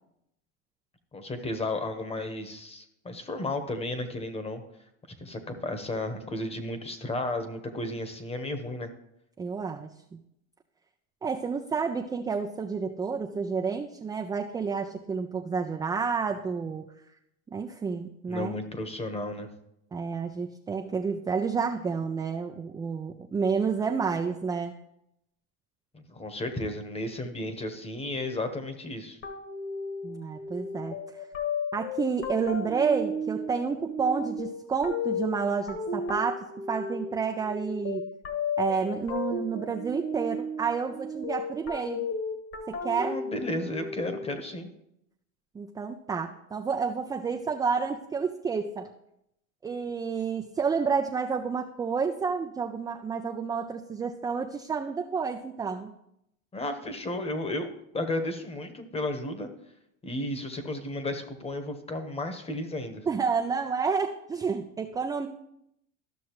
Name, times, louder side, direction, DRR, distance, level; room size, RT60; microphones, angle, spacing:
voice 1, 1.1-4.6 5.2-8.9 18.3-19.5 25.9-29.2 43.0-44.7 56.5-59.5 60.0-63.0, left 1 dB, 15° left, 8 dB, 1.1 m, -33 dB
voice 2, 9.4-10.2 11.2-16.9 17.5-18.5 19.9-24.7 30.0-31.0 31.7-38.1 38.6-42.1 42.7-43.2 45.5-48.9 49.6-55.9 63.1-65.3, right 5 dB, 10° right, 3 dB, 0.3 m, -30 dB
sound 1, 29.2-44.6, left 3 dB, 35° left, 1.4 m, -34 dB
13.0 x 6.2 x 3.0 m, 0.80 s
supercardioid pair, 115°, 37 cm